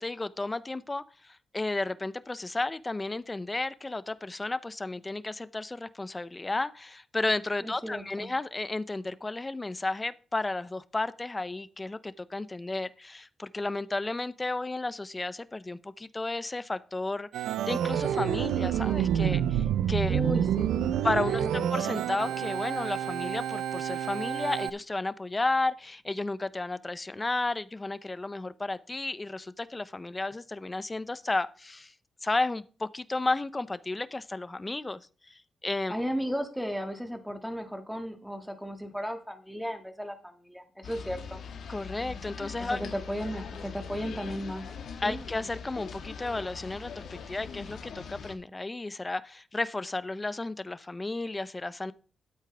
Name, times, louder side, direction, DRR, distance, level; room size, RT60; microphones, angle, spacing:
voice 1, 0.0-20.2 21.0-21.4 21.7-31.9 32.2-35.9 41.7-42.8 45.0-51.9, left 2 dB, 20° left, 0.6 m, -33 dB
voice 2, 7.6-8.3 20.1-21.0 21.3-21.7 35.9-41.4 42.6-44.7 45.0-45.2, equal, ahead, 1.9 m, -35 dB
Organ, 17.3-24.7, right 10 dB, 90° right, 0.5 m, -28 dB
sound 1, 40.8-48.4, left 6 dB, 70° left, 1.6 m, -42 dB
12.0 x 8.2 x 3.4 m
cardioid pair, 80°, 0 cm